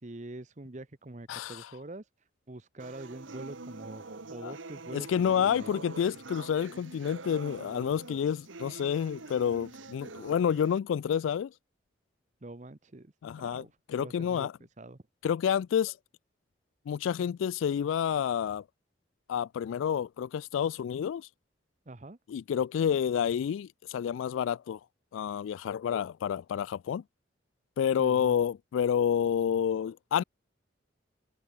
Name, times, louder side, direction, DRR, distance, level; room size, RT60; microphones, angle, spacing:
voice 1, 0.0-5.7 12.4-13.1 13.4-14.5 14.8-15.0 21.9-22.2 28.0-28.4, right 2 dB, 40° right, 0.9 m, -45 dB
voice 2, 1.3-1.7 4.4-4.5 4.9-11.5 13.2-13.6 13.9-14.5 15.2-16.0 16.9-18.6 19.3-21.3 22.3-24.8 25.1-27.0 27.8-30.2, left 8 dB, 90° left, 0.3 m, -29 dB
sound 1, 2.8-10.8, right 3 dB, 85° right, 1.5 m, -45 dB
head